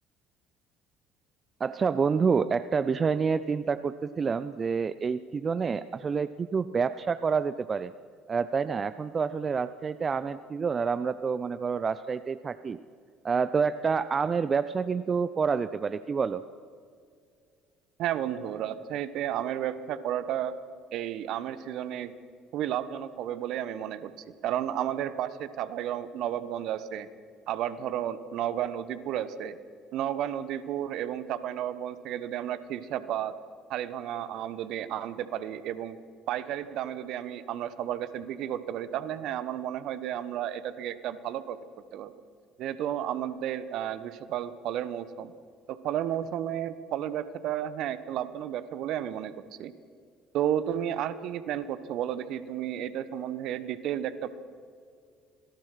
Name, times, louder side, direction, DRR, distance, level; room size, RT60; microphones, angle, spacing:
voice 1, 1.6-7.9 8.3-12.8 13.2-16.4, right 5 dB, 35° right, 15 dB, 0.6 m, -28 dB
voice 2, 18.0-20.5 20.9-22.1 22.5-24.1 24.4-27.1 27.5-29.6 29.9-33.3 33.7-36.0 36.3-41.6 41.9-42.1 42.6-45.3 45.7-49.7 50.3-54.3, right 11 dB, 60° right, 14 dB, 1.2 m, -32 dB
26.5 x 18.0 x 5.9 m, 2.2 s
hypercardioid pair, 55°, 0 cm